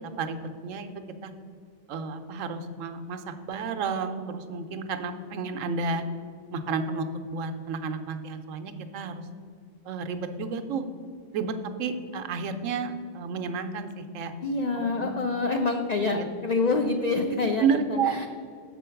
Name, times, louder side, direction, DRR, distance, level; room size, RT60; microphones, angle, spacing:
voice 1, 0.2-0.9 1.2-1.3 1.9-6.0 6.5-9.2 9.9-10.9 11.3-11.5 11.8-14.3 15.0-15.1 16.1-16.3 17.6-18.2, right 5 dB, 90° right, 8 dB, 1.0 m, -31 dB
voice 2, 14.4-18.3, left 3 dB, 85° left, 5 dB, 0.3 m, -27 dB
6.8 x 4.4 x 5.7 m, 2.3 s
omnidirectional pair, 1.3 m